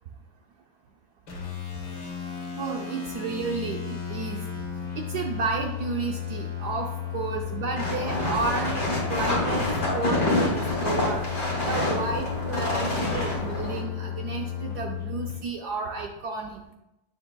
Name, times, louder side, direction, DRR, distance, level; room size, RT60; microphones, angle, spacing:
sound 1, 1.3-15.4, left 9 dB, 70° left, 2.5 m, -34 dB
voice 1, 2.6-4.4 4.9-11.2 11.6-16.6, right 4 dB, 70° right, 2 dB, 1.0 m, -32 dB
sound 2, 7.8-13.8, left 1 dB, 35° left, 2.8 m, -27 dB
9.5 x 6.5 x 2.3 m, 0.92 s
omnidirectional pair, 2.3 m